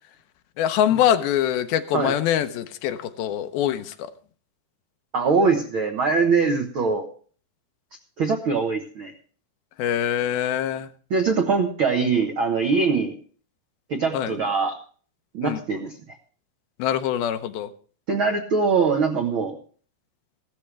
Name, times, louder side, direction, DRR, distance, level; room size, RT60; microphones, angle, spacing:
voice 1, 0.6-4.1 9.8-10.9 14.1-14.3 15.4-15.6 16.8-17.7, left 10 dB, 90° left, 9 dB, 2.7 m, -24 dB
voice 2, 5.1-7.1 8.2-9.1 11.1-13.1 13.9-14.8 15.3-15.9 18.1-19.6, right 4 dB, 75° right, 3 dB, 1.1 m, -22 dB
15.5 x 13.5 x 3.3 m, 0.43 s
omnidirectional pair, 4.3 m